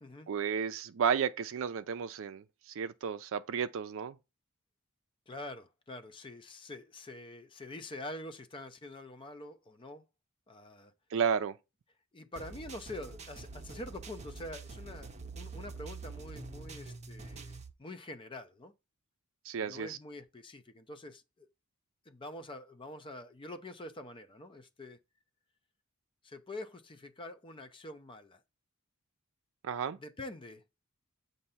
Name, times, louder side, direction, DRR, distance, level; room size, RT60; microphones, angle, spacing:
voice 1, 0.3-4.1 11.1-11.6 19.5-20.0 29.6-30.0, right 7 dB, 65° right, 0.4 m, -32 dB
voice 2, 5.3-10.0 10.5-10.9 12.1-18.7 19.6-21.5 22.1-25.0 26.2-28.4 30.0-30.7, left 1 dB, 25° left, 0.5 m, -46 dB
sound 1, 12.4-17.7, right 3 dB, 30° right, 0.7 m, -46 dB
7.6 x 2.7 x 5.5 m
head